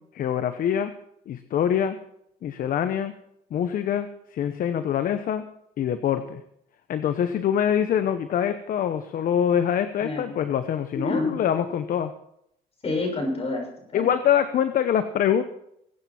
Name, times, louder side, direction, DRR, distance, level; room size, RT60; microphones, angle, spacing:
voice 1, 0.1-0.9 1.3-2.0 2.4-3.1 3.5-4.1 4.3-5.4 5.8-6.4 6.9-12.1 13.9-15.4, left 9 dB, 55° left, 10 dB, 0.9 m, -24 dB
voice 2, 10.9-11.4 12.8-14.1, left 2 dB, 35° left, 1 dB, 6.3 m, -28 dB
21.5 x 9.0 x 4.4 m, 0.75 s
cardioid pair, 110°, 17 cm